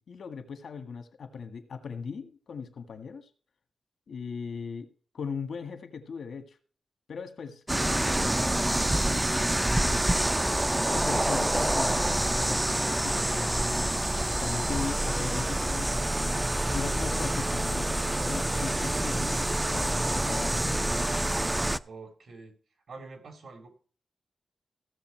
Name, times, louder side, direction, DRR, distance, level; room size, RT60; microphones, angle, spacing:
voice 1, 0.0-3.3 4.1-6.6 7.1-10.3 10.8-13.9 14.3-16.5 16.7-19.4 19.7-20.7, left 5 dB, 75° left, 9 dB, 1.8 m, -39 dB
sound 1, 7.7-21.8, right 1 dB, 15° right, 0.5 m, -27 dB
voice 2, 17.8-18.2 18.5-18.9 21.8-22.5 22.9-23.7, right 3 dB, 75° right, 6 dB, 3.5 m, -46 dB
16.0 x 7.0 x 4.6 m, 0.41 s
wide cardioid pair, 95°, 0 cm